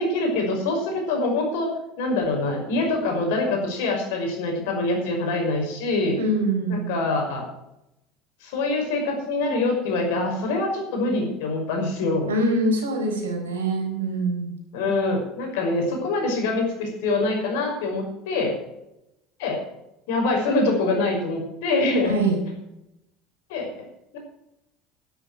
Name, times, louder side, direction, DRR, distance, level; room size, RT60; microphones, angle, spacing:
voice 1, 0.0-1.7 2.0-6.2 6.7-7.4 8.4-12.3 14.7-18.6 19.4-19.6 20.1-22.1 23.5-23.7, left 2 dB, 70° left, 2 dB, 5.7 m, -24 dB
voice 2, 6.2-7.0 12.3-14.5 22.0-22.4, right 1 dB, 85° right, 3 dB, 4.2 m, -24 dB
12.0 x 11.5 x 6.4 m, 0.85 s
hypercardioid pair, 70°, 0 cm